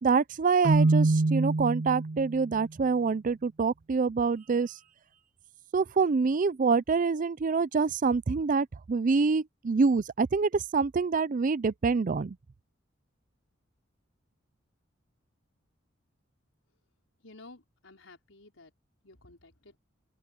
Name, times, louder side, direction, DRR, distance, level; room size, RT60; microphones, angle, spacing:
voice 1, 0.0-4.7 5.7-12.4, right 4 dB, 40° right, 0.4 m, -26 dB
Keyboard (musical), 0.6-2.5, right 2 dB, 70° right, 1.8 m, -25 dB
voice 2, 17.2-18.7 19.0-19.8, left 2 dB, 85° left, 4.5 m, -53 dB
open air
head